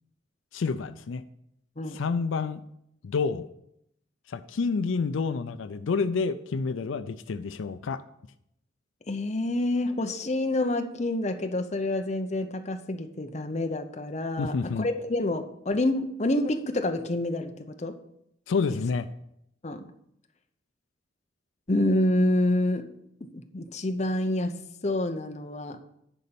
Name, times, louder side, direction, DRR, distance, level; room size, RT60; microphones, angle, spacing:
voice 1, 0.5-1.2 1.9-2.6 3.0-3.5 4.3-8.0 14.4-14.9 18.5-19.1, left 4 dB, 80° left, 11 dB, 0.4 m, -28 dB
voice 2, 9.1-17.9 19.6-19.9 21.7-22.9 23.3-24.5 24.8-25.8, left 1 dB, 35° left, 6 dB, 0.7 m, -27 dB
10.5 x 4.2 x 6.9 m, 0.77 s
head